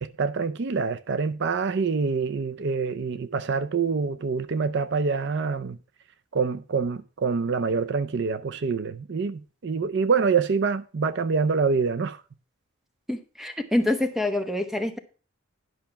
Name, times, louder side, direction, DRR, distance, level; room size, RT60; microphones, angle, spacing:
voice 1, 0.0-5.8 6.3-12.2, right 5 dB, 55° right, 0.5 m, -26 dB
voice 2, 13.1-15.0, left 1 dB, ahead, 0.9 m, -26 dB
10.5 x 5.6 x 5.7 m
head